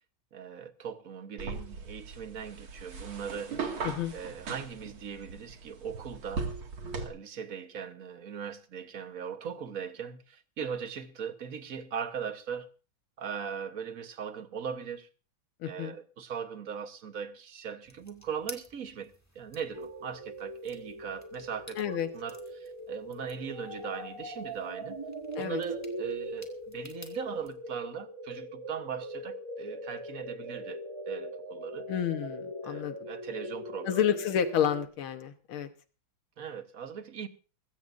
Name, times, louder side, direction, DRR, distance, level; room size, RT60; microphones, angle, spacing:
voice 1, 0.3-3.7 4.1-6.5 7.0-12.7 13.2-15.1 15.6-25.0 25.4-31.9 32.6-34.0 36.4-37.3, right 7 dB, 45° right, 1.4 m, -39 dB
sound 1, 1.4-7.1, right 4 dB, 80° right, 3.0 m, -39 dB
voice 2, 15.6-16.0 21.8-22.1 25.4-25.6 31.9-33.0 33.9-35.7, left 9 dB, 80° left, 2.1 m, -30 dB
sound 2, 17.8-27.5, left 1 dB, 10° left, 2.0 m, -53 dB
sound 3, 19.7-34.9, equal, 15° right, 1.2 m, -41 dB
21.0 x 16.5 x 2.6 m
omnidirectional pair, 2.3 m